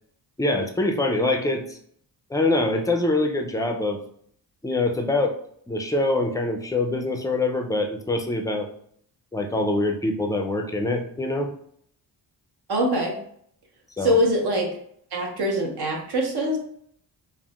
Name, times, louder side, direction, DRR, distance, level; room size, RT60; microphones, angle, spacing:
voice 1, 0.4-1.8 2.3-4.0 4.6-5.3 5.7-8.7 9.3-11.5 14.0-14.2, left 2 dB, 10° left, 4 dB, 0.4 m, -24 dB
voice 2, 12.7-13.1 14.0-14.7 15.1-16.6, equal, 60° right, 0 dB, 0.8 m, -23 dB
3.5 x 2.1 x 2.3 m, 0.65 s
cardioid pair, 65°, 43 cm